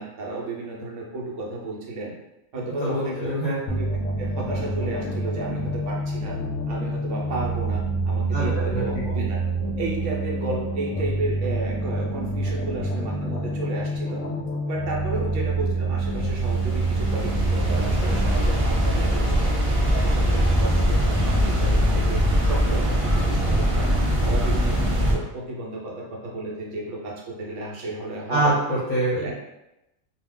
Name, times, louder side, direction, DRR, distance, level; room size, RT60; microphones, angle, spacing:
voice 1, 0.0-2.1 2.5-3.9 4.2-6.4 6.7-9.4 9.8-14.2 14.7-19.5 19.9-23.9 24.2-28.5 29.2-29.3, right 2 dB, 75° right, -2 dB, 1.0 m, -33 dB
voice 2, 2.8-3.6 8.3-8.8 28.3-29.3, right 1 dB, 50° left, -8 dB, 0.7 m, -24 dB
sound 1, 3.7-18.3, right 2 dB, 85° left, 0.9 m, -27 dB
sound 2, 16.0-25.1, equal, 50° right, 0.4 m, -22 dB
2.3 x 2.2 x 3.5 m, 0.91 s
omnidirectional pair, 1.3 m